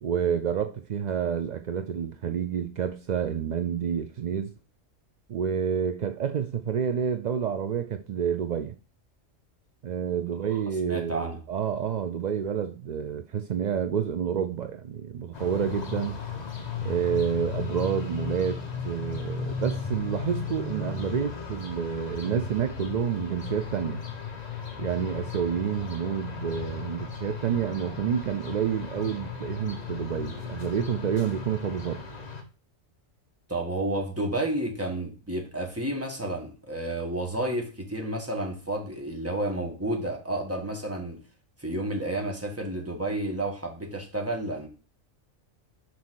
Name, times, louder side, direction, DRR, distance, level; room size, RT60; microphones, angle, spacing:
voice 1, 0.0-4.5 5.3-8.7 9.8-16.2 16.8-24.0 24.8-32.0, right 8 dB, 65° right, 0.4 m, -29 dB
voice 2, 10.5-11.4 33.5-41.2 41.6-44.7, right 1 dB, 10° right, 1.5 m, -31 dB
sound 1, 15.3-32.4, left 5 dB, 35° left, 0.9 m, -36 dB
6.2 x 4.2 x 6.2 m
omnidirectional pair, 1.3 m